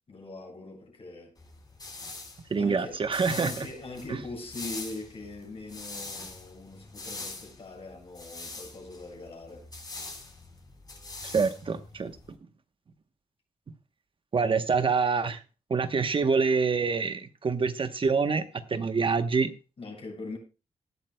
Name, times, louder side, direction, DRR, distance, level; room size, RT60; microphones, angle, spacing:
voice 1, 0.1-1.4 2.6-9.7 19.8-20.4, left 2 dB, 50° left, 6.9 m, -42 dB
sound 1, 1.4-12.3, left 3 dB, 35° left, 3.9 m, -43 dB
voice 2, 2.5-3.6 4.1-4.2 11.2-12.1 14.3-15.4 15.7-18.4 18.7-19.5, right 5 dB, 45° right, 1.0 m, -26 dB
19.0 x 12.0 x 2.2 m
wide cardioid pair, 105°, 12 cm